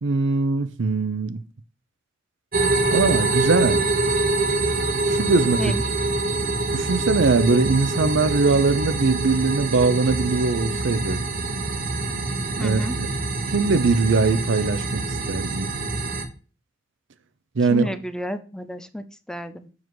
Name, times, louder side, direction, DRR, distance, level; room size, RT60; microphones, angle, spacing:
voice 1, 0.0-1.4 2.9-3.8 5.1-5.8 6.7-11.2 12.6-13.1 13.5-15.7 17.6-17.9, right 3 dB, 65° right, 0.6 m, -21 dB
sound 1, 2.5-16.3, right 3 dB, 50° right, 1.0 m, -25 dB
voice 2, 12.6-13.0 17.7-19.7, left 1 dB, 5° left, 0.4 m, -31 dB
7.2 x 6.2 x 3.0 m
head